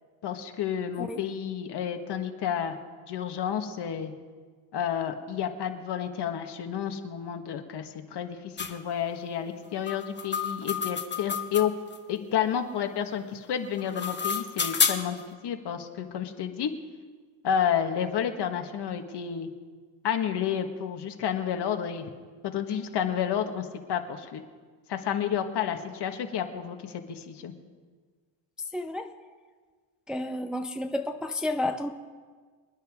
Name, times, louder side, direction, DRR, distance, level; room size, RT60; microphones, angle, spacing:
voice 1, 0.2-2.8 3.1-4.1 4.7-11.7 12.1-16.7 17.4-19.5 20.0-22.1 22.4-24.4 24.9-27.5, left 8 dB, 55° left, 6 dB, 1.5 m, -30 dB
sound 1, 8.6-8.7 9.9-12.0 13.6-15.2, left 6 dB, 20° left, 1.2 m, -29 dB
voice 2, 28.7-29.1 30.1-31.9, left 1 dB, ahead, 5 dB, 0.6 m, -31 dB
26.5 x 10.0 x 3.7 m, 1.5 s
cardioid pair, 100°, 48 cm